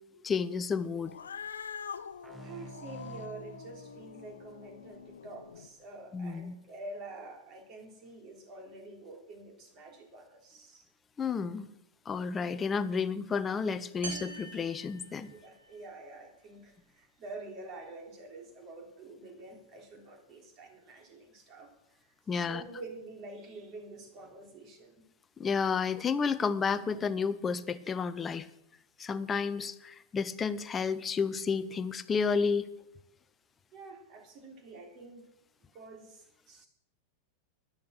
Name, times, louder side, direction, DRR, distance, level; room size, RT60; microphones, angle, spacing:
voice 1, 0.2-1.1 6.1-6.5 11.2-11.7 12.1-15.3 22.3-22.6 25.4-28.5 29.0-32.7, left 5 dB, 20° left, 13 dB, 0.7 m, -31 dB
Cat, 1.0-5.7, left 6 dB, 70° left, 0.7 m, -45 dB
sound 1, 2.2-5.7, right 4 dB, 10° right, 0.8 m, -51 dB
voice 2, 2.4-10.9 15.3-25.0 33.7-35.3 35.7-36.7, right 2 dB, 35° right, 3 dB, 3.5 m, -47 dB
sound 2, 14.0-15.8, right 3 dB, 65° right, 2.5 m, -44 dB
12.5 x 10.5 x 6.5 m, 0.83 s
figure-of-eight pair, 90°, 0 cm